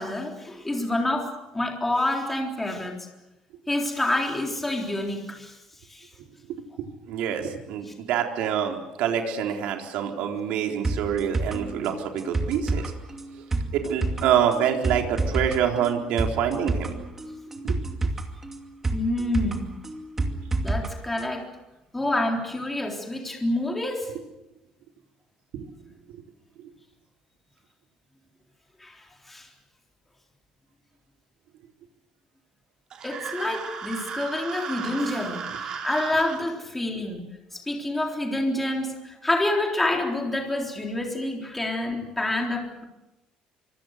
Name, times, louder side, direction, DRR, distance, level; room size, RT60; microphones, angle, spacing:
voice 1, 0.0-3.0 3.7-5.6 5.9-6.1 7.9-8.0 18.9-19.7 20.6-21.5 21.9-24.1 28.8-29.0 29.3-29.5 33.0-42.8, left 1 dB, 10° left, 1 dB, 3.8 m, -28 dB
voice 2, 7.1-12.9 13.7-16.9 17.6-17.8 25.5-25.6, right 9 dB, 70° right, 3 dB, 4.0 m, -26 dB
sound 1, 10.8-20.9 21.2-21.3, right 2 dB, 15° right, 2.4 m, -29 dB
sound 2, 32.9-36.4, right 6 dB, 35° right, 4.1 m, -35 dB
25.0 x 25.0 x 6.6 m, 0.96 s
cardioid pair, 170°, 2 cm